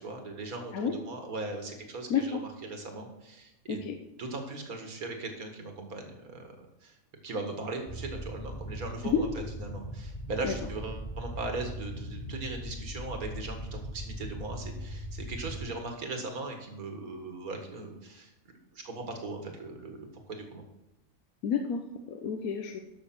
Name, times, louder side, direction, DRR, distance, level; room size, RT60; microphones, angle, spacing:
voice 1, 0.0-3.8 4.2-7.0 7.2-9.3 9.6-18.3 18.7-20.6, right 3 dB, 80° right, 4 dB, 2.2 m, -39 dB
voice 2, 2.1-2.4 3.7-4.0 9.0-9.2 10.4-10.6 21.4-22.8, left 6 dB, 80° left, 4 dB, 1.3 m, -30 dB
sound 1, 7.9-15.6, equal, 25° left, 2.1 m, -39 dB
11.5 x 6.6 x 6.0 m, 0.93 s
omnidirectional pair, 1.5 m